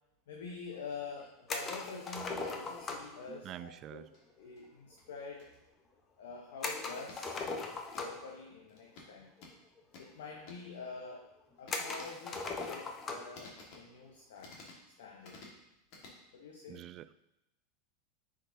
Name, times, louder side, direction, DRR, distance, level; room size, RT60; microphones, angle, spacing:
voice 1, 0.3-4.1 4.4-5.5 6.2-7.5 8.0-9.3 10.0-11.3 11.6-14.6 15.0-15.4 16.3-16.8, left 4 dB, 70° left, 0 dB, 1.0 m, -46 dB
sound 1, 1.1-3.1 3.7-5.8 6.3-6.5 6.9-8.2 8.7-10.7 11.6-12.8 13.3-13.9 14.3-15.6 15.9-16.1, left 3 dB, 55° left, 1.8 m, -56 dB
sound 2, 1.5-3.2 6.6-8.3 9.4-9.5 9.8-9.9 10.7-10.8 11.7-13.4, left 3 dB, 30° left, 1.0 m, -39 dB
voice 2, 3.3-4.1 16.7-17.1, right 12 dB, 40° right, 15 dB, 0.3 m, -47 dB
9.8 x 5.0 x 2.8 m, 0.90 s
hypercardioid pair, 90°, 0 cm